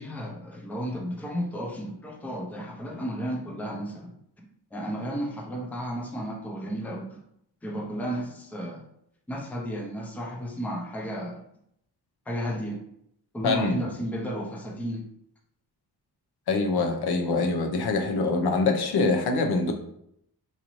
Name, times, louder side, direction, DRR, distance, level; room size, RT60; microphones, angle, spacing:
voice 1, 0.0-4.1 4.7-7.2 7.6-8.8 9.3-11.4 12.3-12.8 13.3-15.0, equal, 5° left, 0 dB, 0.5 m, -33 dB
voice 2, 13.4-13.8 16.5-19.7, left 3 dB, 70° left, 4 dB, 0.7 m, -24 dB
4.0 x 2.6 x 3.0 m, 0.73 s
wide cardioid pair, 155°, 40 cm